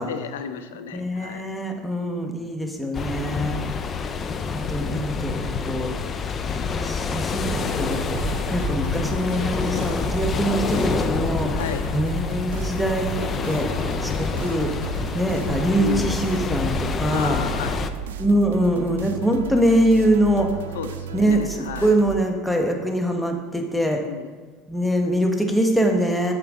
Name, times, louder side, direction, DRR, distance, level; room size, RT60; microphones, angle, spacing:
voice 1, 0.1-1.5 11.5-11.9 15.8-16.1 17.1-17.9 20.7-22.0 24.1-24.4, left 7 dB, 85° left, 10 dB, 0.6 m, -32 dB
voice 2, 0.9-3.6 4.5-5.9 6.7-8.2 8.5-11.6 11.9-14.7 15.1-17.4 18.2-20.6 21.1-24.0 24.7-26.3, right 1 dB, 5° left, 3 dB, 1.3 m, -23 dB
sound 1, 2.9-17.9, left 5 dB, 35° left, 0.6 m, -27 dB
sound 2, 7.4-22.2, right 9 dB, 85° right, 0.5 m, -35 dB
8.7 x 7.7 x 3.8 m, 1.3 s
hypercardioid pair, 95°, 0 cm